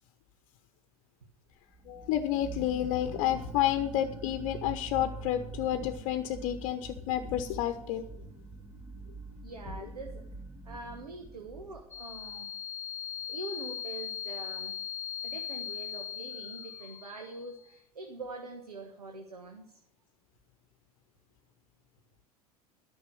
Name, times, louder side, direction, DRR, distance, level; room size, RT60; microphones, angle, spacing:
sound 1, 1.7-12.4, right 3 dB, 15° right, 1.2 m, -45 dB
voice 1, 1.9-8.0, left 12 dB, 45° left, 7 dB, 1.0 m, -30 dB
voice 2, 9.4-10.2 10.6-12.5 13.3-14.8 15.2-19.8, right 3 dB, 75° right, 3 dB, 1.4 m, -44 dB
sound 2, 11.9-17.6, left 8 dB, 15° left, 0.5 m, -39 dB
12.5 x 6.2 x 9.2 m, 0.74 s
figure-of-eight pair, 80°, 19 cm